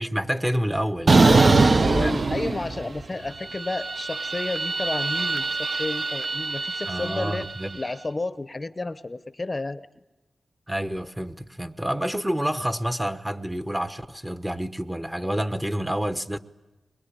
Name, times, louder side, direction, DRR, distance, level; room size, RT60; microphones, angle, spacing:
voice 1, 0.0-1.2 1.6-2.2 6.9-7.8 10.7-16.4, equal, 10° right, 1.0 m, -28 dB
sound 1, 1.1-3.0 3.3-7.7, right 3 dB, 45° right, 0.7 m, -22 dB
voice 2, 1.2-7.5 7.8-9.9, left 2 dB, 30° left, 0.8 m, -31 dB
22.5 x 21.5 x 9.9 m
wide cardioid pair, 85°, 0 cm